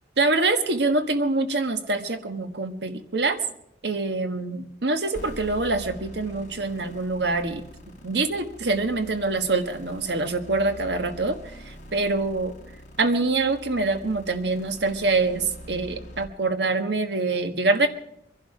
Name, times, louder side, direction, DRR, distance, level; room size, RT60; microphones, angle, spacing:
voice 1, 0.2-3.4 3.8-7.6 8.0-11.4 11.9-12.5 13.0-17.9, right 3 dB, 75° right, 7 dB, 1.5 m, -25 dB
sound 1, 5.1-16.2, equal, 45° left, 3.3 m, -44 dB
23.5 x 11.5 x 4.9 m, 0.77 s
head